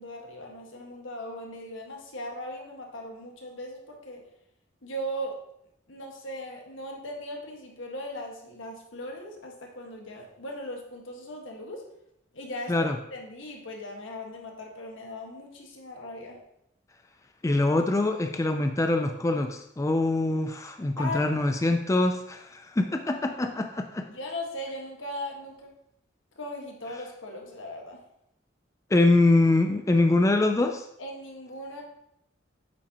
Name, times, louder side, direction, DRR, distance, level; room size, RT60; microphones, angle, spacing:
voice 1, 0.0-4.2 4.8-5.4 5.9-11.8 12.3-16.4 21.0-21.3 24.1-25.7 26.4-28.0 31.0-31.8, left 1 dB, 75° left, 0 dB, 1.6 m, -38 dB
voice 2, 17.4-24.1 28.9-30.9, left 2 dB, 15° left, 6 dB, 0.4 m, -24 dB
8.7 x 7.1 x 2.9 m, 0.78 s
head